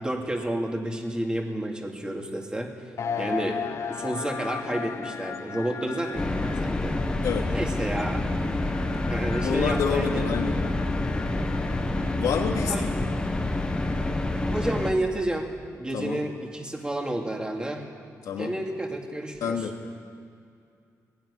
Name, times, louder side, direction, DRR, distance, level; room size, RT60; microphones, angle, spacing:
voice 1, 0.0-2.7 3.2-3.6 3.9-7.0 7.5-8.2 9.1-10.3 12.7-13.1 14.5-17.8 18.4-19.7, right 1 dB, 15° right, 2 dB, 2.7 m, -30 dB
sound 1, 3.0-14.4, left 6 dB, 55° left, 1.0 m, -38 dB
sound 2, 6.2-14.9, left 2 dB, 15° left, 1.6 m, -27 dB
voice 2, 9.4-10.5 12.2-12.7 15.9-16.2 18.2-18.5 19.4-19.7, left 7 dB, 85° left, 2 dB, 2.7 m, -27 dB
20.0 x 16.5 x 9.9 m, 2.3 s
cardioid pair, 110°, 6 cm